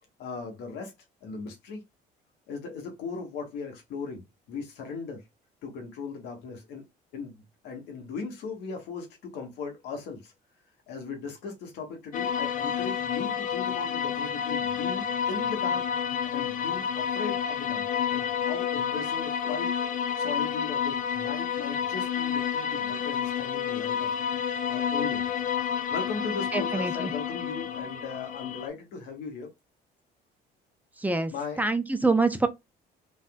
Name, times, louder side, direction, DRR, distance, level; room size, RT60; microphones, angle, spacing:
voice 1, 0.2-0.9 1.2-1.8 2.5-5.2 5.6-6.8 7.1-7.3 7.6-10.3 10.9-15.8 16.3-17.9 18.1-19.7 20.2-24.1 24.7-25.3 25.9-29.5 31.3-31.6, left 4 dB, 85° left, 1.3 m, -38 dB
sound 1, 12.1-28.7, left 8 dB, 50° left, 0.5 m, -29 dB
voice 2, 26.5-27.1 31.0-31.3 31.6-32.5, right 3 dB, 10° right, 0.5 m, -25 dB
3.4 x 2.5 x 2.2 m
cardioid pair, 110°, 17 cm